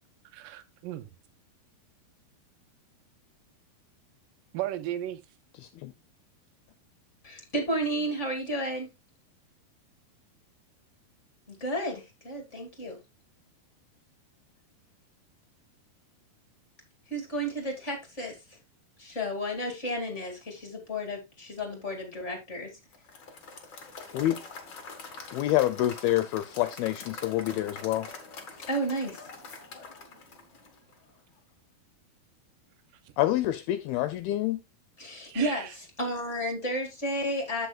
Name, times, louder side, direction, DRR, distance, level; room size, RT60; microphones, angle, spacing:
voice 1, 0.3-1.1 4.5-5.2 33.1-33.2 35.3-35.7, right 13 dB, 75° right, 2.1 m, -35 dB
voice 2, 7.2-8.9 11.5-13.0 17.1-18.4 19.0-22.7 28.7-29.2 35.0-37.7, equal, 25° left, 1.6 m, -32 dB
Applause / Crowd, 22.9-31.1, left 4 dB, 55° left, 1.2 m, -44 dB
voice 3, 25.3-28.1 33.2-34.6, left 14 dB, 80° left, 2.3 m, -27 dB
15.0 x 5.4 x 2.3 m
omnidirectional pair, 4.8 m